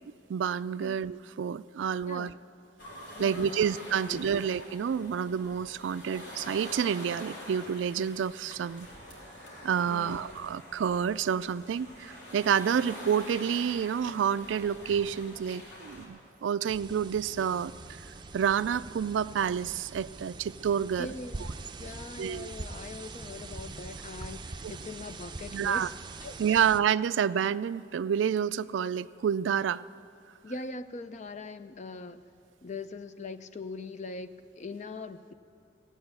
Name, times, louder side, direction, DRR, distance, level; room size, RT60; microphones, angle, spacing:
voice 1, 0.3-2.3 3.2-8.9 9.6-17.7 18.3-21.1 22.2-22.5 24.6-24.7 25.5-25.9 26.4-29.8, right 8 dB, 80° right, 16 dB, 0.3 m, -29 dB
voice 2, 2.0-2.4 3.1-4.4 9.9-10.4 21.0-21.5 21.8-25.9 26.2-26.6 30.4-32.2 32.6-35.3, left 3 dB, 40° left, 11 dB, 0.5 m, -42 dB
sound 1, 2.8-16.1, equal, 80° left, 3.3 m, -46 dB
sound 2, 16.7-26.8, right 3 dB, 25° right, 0.6 m, -43 dB
16.0 x 8.7 x 8.2 m, 2.7 s
head